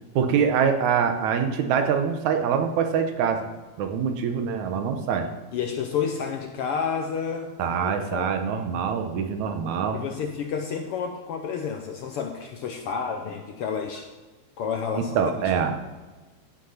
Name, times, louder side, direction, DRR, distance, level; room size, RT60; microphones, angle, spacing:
voice 1, 0.2-3.5 3.8-5.3 7.6-10.0 15.2-15.7, right 7 dB, 80° right, 7 dB, 2.4 m, -24 dB
voice 2, 5.5-8.5 9.9-14.1 14.6-15.3, left 6 dB, 70° left, 4 dB, 1.4 m, -30 dB
15.5 x 6.5 x 5.6 m, 1.3 s
omnidirectional pair, 3.3 m